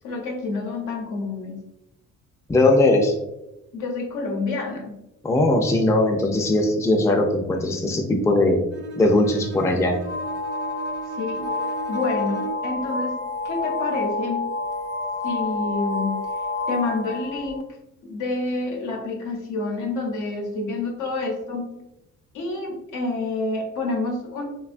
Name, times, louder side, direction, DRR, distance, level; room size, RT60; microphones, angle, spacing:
voice 1, 0.0-1.6 3.7-4.9 11.2-11.5 11.9-13.2 13.4-14.4 15.2-16.2 16.7-17.7 18.0-21.7 22.3-24.4, left 3 dB, 85° left, 0 dB, 0.8 m, -28 dB
voice 2, 2.5-3.2 5.2-8.6 9.0-10.0, left 2 dB, 10° left, 2 dB, 0.4 m, -19 dB
Bowed string instrument, 8.7-12.8, right 6 dB, 50° right, 0.5 m, -37 dB
sound 1, 10.1-17.6, left 3 dB, 65° left, 0.5 m, -29 dB
3.3 x 2.2 x 2.4 m, 0.89 s
cardioid pair, 90°, 30 cm